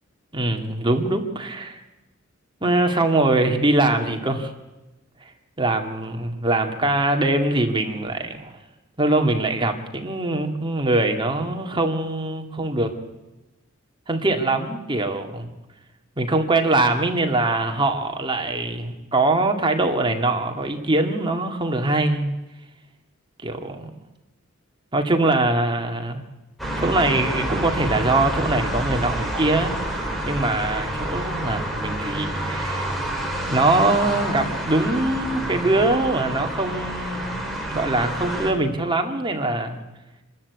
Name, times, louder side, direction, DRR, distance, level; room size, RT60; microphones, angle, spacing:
voice 1, 0.3-1.8 2.6-4.5 5.6-8.5 9.0-12.9 14.1-15.5 16.2-22.3 23.4-23.9 24.9-26.2 26.8-33.0 33.5-39.8, right 2 dB, 25° right, 4 dB, 2.2 m, -23 dB
sound 1, 26.6-38.5, right 1 dB, ahead, 3.7 m, -28 dB
25.5 x 13.0 x 8.4 m, 1.1 s
head